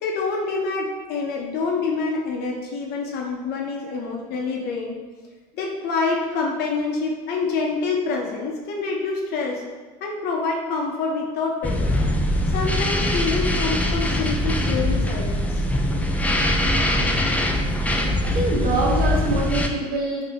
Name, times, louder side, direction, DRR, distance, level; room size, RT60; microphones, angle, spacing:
voice 1, 0.0-5.0 5.5-9.6 10.0-11.9 12.5-15.6, left 4 dB, 55° left, 0 dB, 0.7 m, -26 dB
sound 1, 11.6-19.7, left 1 dB, 5° left, 0.4 m, -22 dB
voice 2, 18.3-20.2, right 2 dB, 50° right, -3 dB, 1.2 m, -24 dB
3.4 x 2.8 x 3.4 m, 1.3 s
hypercardioid pair, 85°, 19 cm